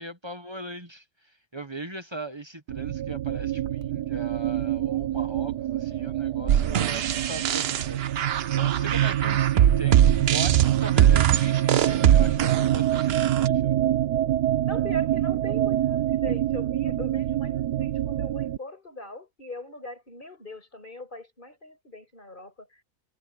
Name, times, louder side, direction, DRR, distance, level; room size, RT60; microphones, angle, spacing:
voice 1, 0.0-8.2 8.5-13.8, right 2 dB, 20° right, 1.2 m, -39 dB
sound 1, 2.7-18.6, right 12 dB, 85° right, 1.5 m, -26 dB
sound 2, 6.5-13.5, right 10 dB, 60° right, 0.7 m, -22 dB
voice 2, 14.6-22.8, left 2 dB, 30° left, 6.1 m, -41 dB
omnidirectional pair, 1.7 m